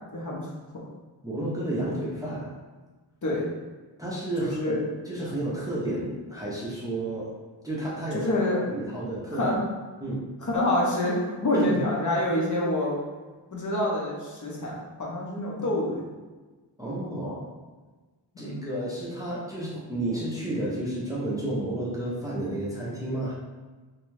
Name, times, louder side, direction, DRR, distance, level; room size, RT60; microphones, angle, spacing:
voice 1, 0.1-0.5 3.2-3.5 4.4-4.8 8.1-8.6 9.3-9.6 10.4-13.0 13.5-16.0 18.4-18.7, left 1 dB, 45° left, -4 dB, 0.6 m, -27 dB
voice 2, 1.2-2.5 4.0-4.8 5.0-7.3 7.6-8.3 8.7-9.5 10.0-10.2 11.5-11.8 16.8-17.5 18.4-23.3, right 1 dB, 10° right, -7 dB, 0.5 m, -31 dB
2.6 x 2.2 x 3.1 m, 1.3 s
wide cardioid pair, 135°, 44 cm